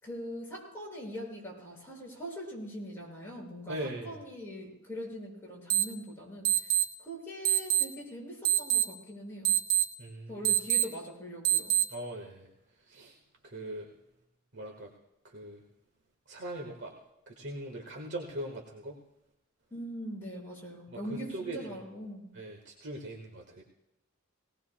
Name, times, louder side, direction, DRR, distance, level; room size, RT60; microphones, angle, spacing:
voice 1, 0.0-3.8 4.0-6.5 7.0-9.5 10.3-11.7 19.7-22.3, equal, 10° left, -5 dB, 6.3 m, -42 dB
voice 2, 3.7-4.2 10.0-10.4 11.9-12.5 12.9-13.1 13.4-13.9 14.5-14.9 15.2-15.6 16.3-16.9 17.3-19.0 20.9-21.6 22.3-23.6, right 1 dB, 60° right, 1 dB, 1.6 m, -40 dB
sound 1, 5.7-5.8 6.4-6.8 7.4-7.8 8.4-8.8 9.4-9.8 10.4-10.8 11.4-11.8, right 12 dB, 75° right, 1.2 m, -24 dB
19.5 x 19.0 x 2.3 m, 0.88 s
head